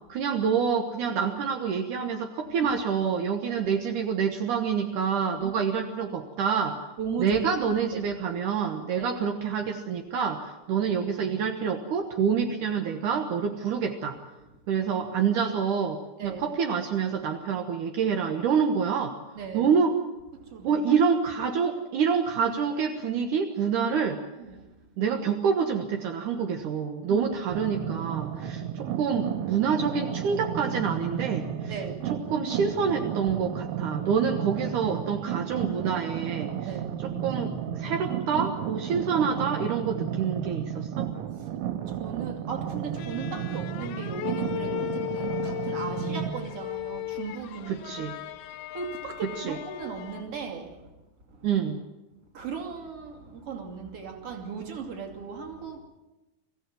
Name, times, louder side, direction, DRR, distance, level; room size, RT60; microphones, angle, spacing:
voice 1, 0.1-6.8 7.2-14.2 14.7-19.2 19.5-20.0 20.6-24.2 25.0-31.7 32.3-36.7 37.0-41.1 47.7-48.1 49.2-49.6 51.4-51.8, right 6 dB, 70° right, 3 dB, 1.9 m, -27 dB
voice 2, 7.0-7.4 7.7-8.1 9.0-9.1 16.2-16.4 19.3-19.7 20.3-20.8 24.4-24.6 27.1-27.3 31.7-32.1 36.7-37.0 41.4-41.6 41.8-48.1 48.7-50.9 51.3-51.5 52.3-55.8, right 5 dB, 35° right, 2 dB, 2.9 m, -37 dB
sound 1, 27.5-46.3, right 10 dB, 85° right, 3.6 m, -33 dB
sound 2, 43.0-50.5, left 17 dB, 75° left, 3.1 m, -36 dB
24.0 x 16.0 x 9.4 m, 1.1 s
omnidirectional pair, 5.5 m